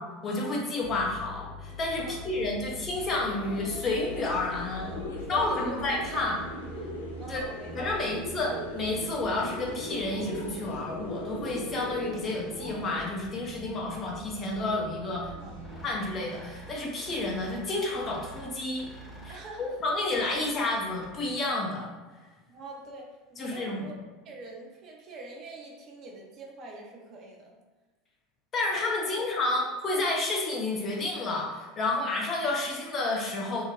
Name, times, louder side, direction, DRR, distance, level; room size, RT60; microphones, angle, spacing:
voice 1, 0.0-4.9 5.3-6.4 7.3-7.4 7.7-15.3 15.8-18.9 19.2-21.9 23.4-23.9 28.5-33.6, left 2 dB, 35° left, -2 dB, 0.6 m, -30 dB
sound 1, 0.8-15.9, equal, 85° right, 1.0 m, -43 dB
voice 2, 2.0-2.4 4.8-6.4 7.2-8.1 15.3-15.9 19.3-19.8 22.5-24.0 24.2-27.5, right 3 dB, 45° right, 0 dB, 0.5 m, -44 dB
sound 2, 3.0-13.1, left 1 dB, 75° left, 0.4 m, -40 dB
sound 3, 15.6-21.4, right 1 dB, 5° left, 0.9 m, -48 dB
2.6 x 2.1 x 3.0 m, 1.3 s
figure-of-eight pair, 75°, 0 cm